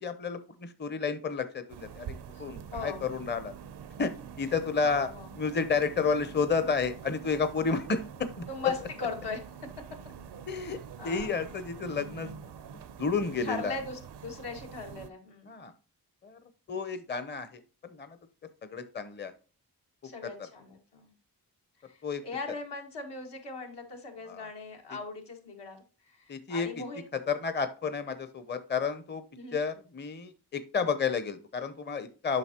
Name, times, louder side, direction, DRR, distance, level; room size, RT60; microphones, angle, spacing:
voice 1, 0.0-3.5 4.0-5.1 5.4-8.5 10.5-10.8 11.0-12.3 12.7-13.8 15.5-15.7 16.2-16.4 16.7-18.2 18.6-19.3 20.2-20.3 22.0-22.2 24.3-24.5 26.3-26.8 27.1-29.2 29.5-32.4, left 5 dB, 25° left, 11 dB, 0.6 m, -31 dB
sound 1, 1.7-15.1, right 7 dB, 85° right, 0.6 m, -45 dB
voice 2, 2.3-3.0 4.8-5.3 8.5-9.4 9.8-9.9 10.5-11.3 13.4-15.6 20.0-21.1 21.9-22.0 22.2-25.8 26.1-27.0 29.3-29.6, left 4 dB, 80° left, 1 dB, 1.8 m, -39 dB
7.8 x 5.5 x 2.9 m, 0.36 s
cardioid pair, 65°, 40 cm